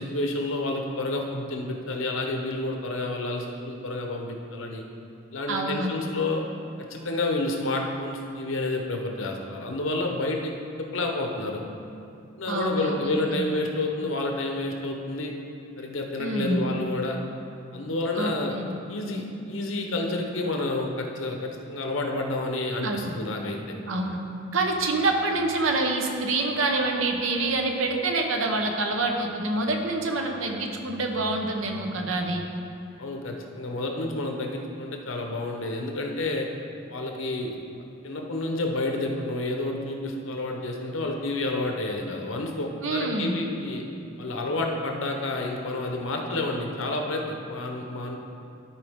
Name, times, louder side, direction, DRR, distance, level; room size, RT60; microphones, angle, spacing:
voice 1, 0.0-4.8 5.3-6.4 6.9-10.5 10.8-11.6 12.4-15.3 15.8-17.2 17.7-18.6 18.9-23.8 33.0-36.5 36.9-37.5 38.0-43.8 44.2-48.2, left 2 dB, 75° left, 2 dB, 0.9 m, -29 dB
voice 2, 5.5-5.9 12.5-13.5 16.2-16.6 18.2-18.7 22.8-23.1 23.9-24.2 24.5-32.4 42.8-43.3, right 2 dB, 75° right, 2 dB, 0.9 m, -26 dB
13.0 x 4.8 x 3.6 m, 2.7 s
head